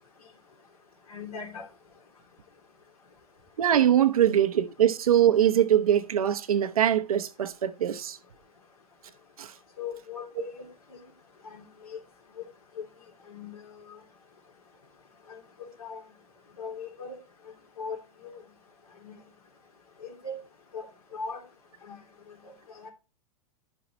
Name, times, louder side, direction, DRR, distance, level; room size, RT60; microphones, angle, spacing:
voice 1, 1.1-1.7 9.8-10.7 11.4-12.0 12.8-12.9 13.3-13.6 13.9-14.0 15.3-16.0 16.6-17.2 17.8-18.4 19.0-19.2 20.0-20.4 20.7-20.8 21.1-21.4 21.9-22.0 22.8-22.9, left 5 dB, 85° left, 3.1 m, -39 dB
voice 2, 3.6-8.2 9.4-9.5, right 10 dB, 80° right, 0.8 m, -22 dB
11.0 x 5.5 x 4.2 m
hypercardioid pair, 100°, 18 cm